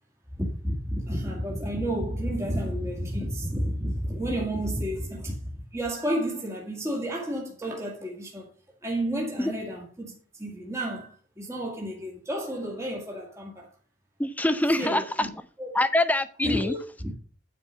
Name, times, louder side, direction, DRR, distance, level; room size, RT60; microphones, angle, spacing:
voice 1, 0.3-8.5 8.8-13.7 14.7-15.1 15.6-15.7 16.4-17.1, equal, 15° right, 2.1 m, -31 dB
voice 2, 14.2-15.3 15.7-16.7, left 1 dB, 10° left, 0.6 m, -24 dB
9.6 x 4.6 x 6.4 m
head